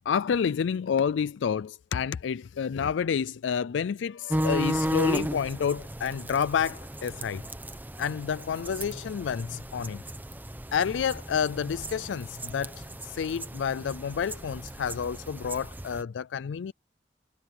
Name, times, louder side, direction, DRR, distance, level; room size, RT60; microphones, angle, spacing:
voice 1, 0.1-7.4 8.0-10.0 10.7-16.7, left 7 dB, 90° left, 0.4 m, -29 dB
sound 1, 4.3-16.0, right 1 dB, 10° right, 1.0 m, -35 dB
head